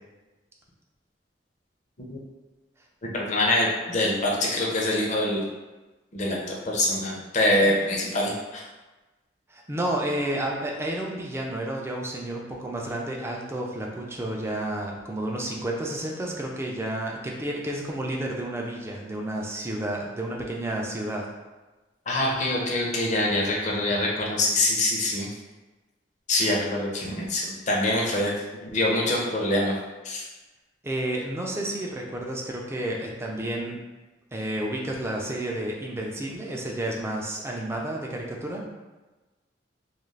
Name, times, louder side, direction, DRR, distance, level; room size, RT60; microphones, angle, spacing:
voice 1, 3.0-5.4 6.1-8.6 22.1-25.3 26.3-29.7 30.0-30.2, left 1 dB, 40° left, -3 dB, 0.6 m, -25 dB
voice 2, 9.5-21.3 30.8-33.8 34.3-38.6, right 1 dB, 15° right, -1 dB, 0.4 m, -31 dB
2.4 x 2.3 x 3.2 m, 1.2 s
head